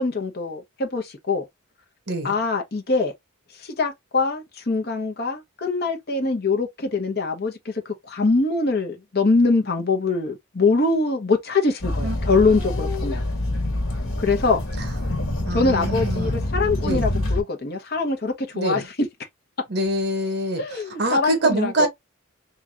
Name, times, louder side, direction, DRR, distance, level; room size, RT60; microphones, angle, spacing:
voice 1, 0.0-1.4 2.2-3.1 3.6-13.2 14.2-14.6 15.5-19.1 20.6-21.9, left 3 dB, 50° left, 1.0 m, -23 dB
sound 1, 11.8-17.4, left 1 dB, 75° left, 1.6 m, -26 dB
voice 2, 15.4-16.4 16.8-17.1 18.5-18.9 19.7-21.9, right 1 dB, 50° right, 1.3 m, -25 dB
3.8 x 3.1 x 2.8 m
head